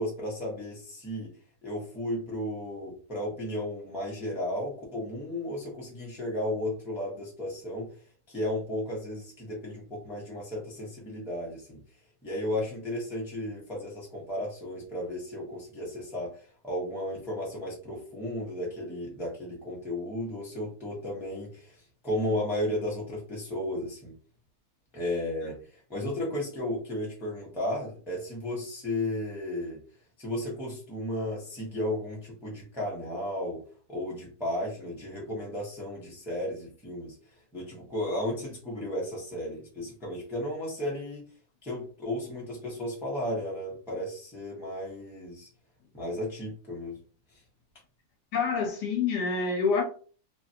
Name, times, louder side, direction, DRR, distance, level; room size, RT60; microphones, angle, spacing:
voice 1, 0.0-1.3 1.6-7.9 8.3-11.8 12.2-21.8 22.0-24.1 24.9-29.8 30.2-33.6 33.9-37.2 37.5-41.2 41.6-45.5 45.9-47.0, left 1 dB, ahead, 0.6 m, -34 dB
voice 2, 48.3-49.8, left 5 dB, 70° left, 1.3 m, -27 dB
3.1 x 2.5 x 2.7 m
omnidirectional pair, 1.9 m